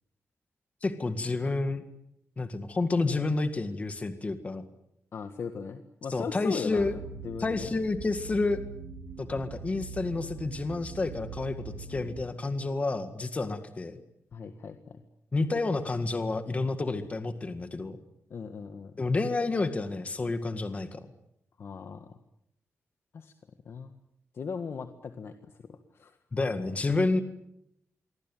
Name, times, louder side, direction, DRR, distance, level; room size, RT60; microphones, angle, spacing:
voice 1, 0.8-1.8 2.4-4.6 6.1-6.9 7.4-8.6 9.2-14.0 15.3-18.0 19.0-21.1 26.3-27.2, left 3 dB, 25° left, 8 dB, 1.9 m, -29 dB
voice 2, 5.1-7.0 7.2-7.7 14.3-15.0 18.3-18.9 21.6-22.2 23.1-23.3 23.7-23.9 24.3-26.2, left 5 dB, 55° left, 7 dB, 1.7 m, -38 dB
sound 1, 6.8-12.2, right 5 dB, 60° right, 5.1 m, -42 dB
26.5 x 24.0 x 9.2 m, 0.79 s
wide cardioid pair, 170°, 5 cm